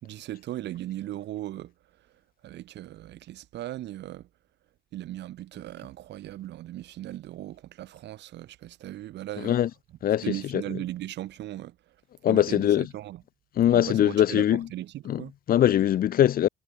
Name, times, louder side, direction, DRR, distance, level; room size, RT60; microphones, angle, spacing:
voice 1, 0.0-4.3 4.9-9.6 10.2-12.0 12.3-13.2 13.7-15.3, right 14 dB, 75° right, 1.1 m, -38 dB
voice 2, 12.2-12.9 13.6-14.7 15.1-16.5, left 11 dB, 55° left, 0.5 m, -22 dB
cardioid pair, 90°, 18 cm